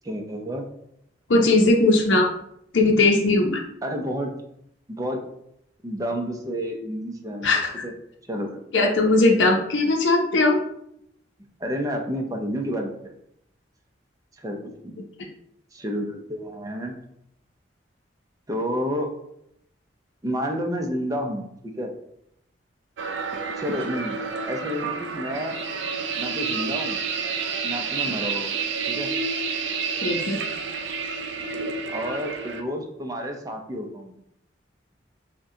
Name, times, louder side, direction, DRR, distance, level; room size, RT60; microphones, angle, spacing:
voice 1, 0.0-0.7 3.8-4.3 5.0-5.2 5.8-7.9 8.2-8.6 11.6-13.1 14.4-15.0 15.7-17.0 18.5-19.1 20.2-21.9 23.6-25.6 26.2-27.0 27.6-28.5 28.9-29.1 31.9-34.1, equal, 20° right, 3 dB, 0.5 m, -30 dB
voice 2, 1.3-2.3 2.7-3.6 7.4-7.8 8.7-10.6 30.0-30.4, left 2 dB, 85° left, 0 dB, 0.6 m, -19 dB
sound 1, 23.0-32.6, right 5 dB, 70° right, 0.4 m, -29 dB
6.1 x 2.2 x 2.8 m, 0.75 s
head